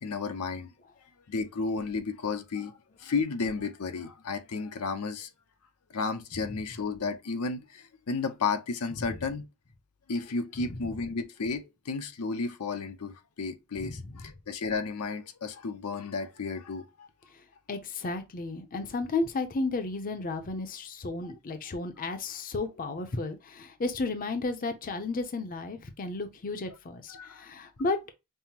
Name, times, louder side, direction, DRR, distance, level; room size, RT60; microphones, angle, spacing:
voice 1, 0.0-0.7 1.3-2.7 3.0-5.3 5.9-9.4 10.1-17.1 27.1-27.4, left 4 dB, 85° left, 0.6 m, -33 dB
voice 2, 10.6-10.9 13.8-14.2 17.3-28.0, left 3 dB, 40° left, 0.5 m, -33 dB
5.4 x 2.0 x 2.8 m
head